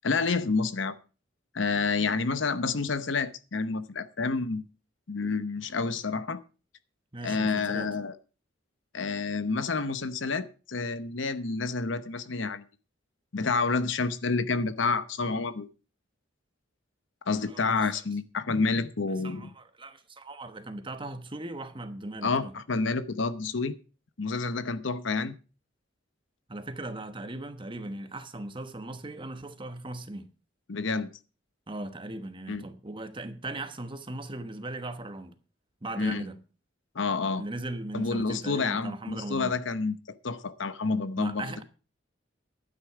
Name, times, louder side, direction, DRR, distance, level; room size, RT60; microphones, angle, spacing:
voice 1, 0.0-0.9 1.5-4.6 5.1-6.4 7.2-8.2 8.9-12.6 13.3-15.7 17.3-19.5 22.2-23.8 24.2-25.3 30.7-31.1 32.5-32.6 36.0-36.3 36.9-37.4 37.9-40.0 40.2-41.4, left 4 dB, 70° left, 0.9 m, -29 dB
voice 2, 7.1-7.9 17.5-17.9 19.2-22.5 26.5-30.3 31.7-35.4 35.8-36.4 37.4-39.5 41.2-41.6, right 2 dB, 25° right, 1.2 m, -38 dB
11.5 x 9.7 x 4.7 m
head